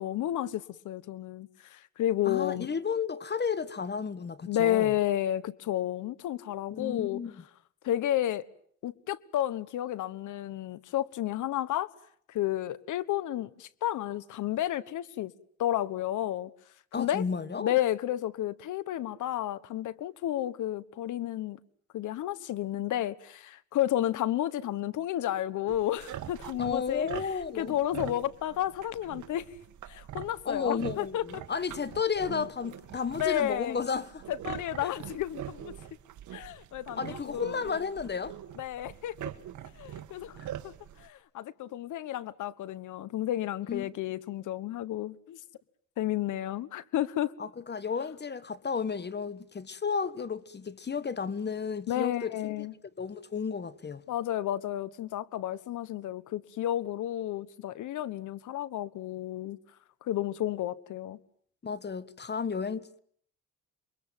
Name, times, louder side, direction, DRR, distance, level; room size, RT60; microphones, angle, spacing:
voice 1, 0.0-2.7 4.5-7.2 7.8-8.5 8.8-11.9 12.3-15.3 15.6-16.5 17.0-17.2 17.6-21.6 21.9-27.1 27.5-29.4 29.9-31.4 33.2-33.8 34.3-35.7 36.3-37.9 38.6-39.2 39.8-40.4 40.6-45.4 46.0-47.3 51.9-52.7 54.1-59.6 60.0-61.2, left 12 dB, 80° left, 1.4 m, -31 dB
voice 2, 2.3-4.9 6.7-7.3 16.9-17.8 26.6-27.8 30.4-34.2 34.8-34.9 36.9-38.3 40.4-40.5 43.7-43.9 47.4-52.7 53.0-54.0 61.6-63.0, left 6 dB, 35° left, 1.5 m, -33 dB
sound 1, 25.7-41.1, right 11 dB, 75° right, 2.0 m, -44 dB
28.5 x 23.0 x 9.1 m
cardioid pair, 90°, 30 cm